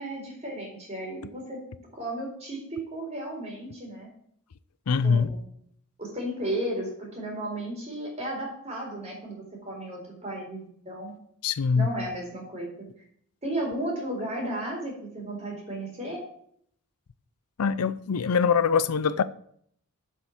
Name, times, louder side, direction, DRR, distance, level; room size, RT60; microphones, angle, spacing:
voice 1, 0.0-1.6 1.9-4.1 5.0-5.4 6.0-11.1 11.8-12.7 13.4-16.2, right 1 dB, 30° right, 4.1 m, -34 dB
voice 2, 4.9-5.3 11.4-11.9 17.6-19.2, left 6 dB, 85° left, 0.5 m, -23 dB
8.0 x 6.5 x 7.3 m
head